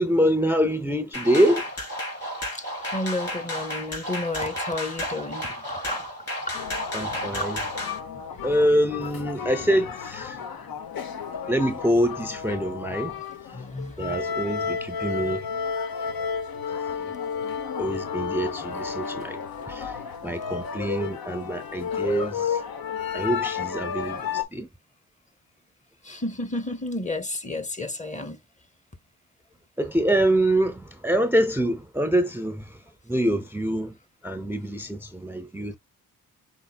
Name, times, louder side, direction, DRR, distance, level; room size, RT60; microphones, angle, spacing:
voice 1, 0.0-1.7 6.9-7.6 8.4-10.5 11.5-13.1 13.5-13.6 14.0-15.5 16.7-17.1 17.8-19.4 19.7-20.0 20.2-22.6 23.1-24.7 29.8-34.0 34.2-35.8, equal, 5° right, 0.5 m, -25 dB
sound 1, 1.1-8.0, left 1 dB, 40° left, 3.9 m, -32 dB
voice 2, 2.8-6.1 8.2-8.3 13.5-14.2 26.1-28.4, left 2 dB, 20° left, 0.8 m, -32 dB
sound 2, 6.5-24.4, left 6 dB, 80° left, 0.8 m, -32 dB
5.5 x 3.9 x 2.3 m
cardioid pair, 70°, 35 cm